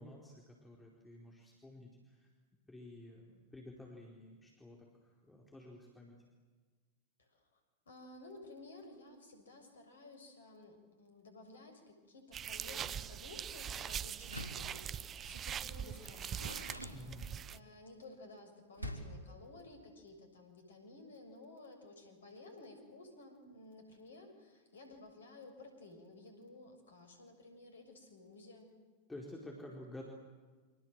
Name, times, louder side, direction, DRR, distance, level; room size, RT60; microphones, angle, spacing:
voice 1, 0.0-2.3 2.7-6.1 16.9-17.3 29.1-30.0, left 1 dB, 10° left, -1 dB, 4.7 m, -51 dB
voice 2, 7.2-7.6 7.8-16.7 17.1-28.8, left 2 dB, 65° left, 6 dB, 6.6 m, -55 dB
sound 1, 12.3-17.6, right 8 dB, 25° right, 0.8 m, -42 dB
Door, 14.2-14.7 15.9-17.6 18.8-19.3, equal, 85° right, 3.8 m, -46 dB
29.5 x 26.5 x 7.8 m, 1.4 s
figure-of-eight pair, 90°, 0 cm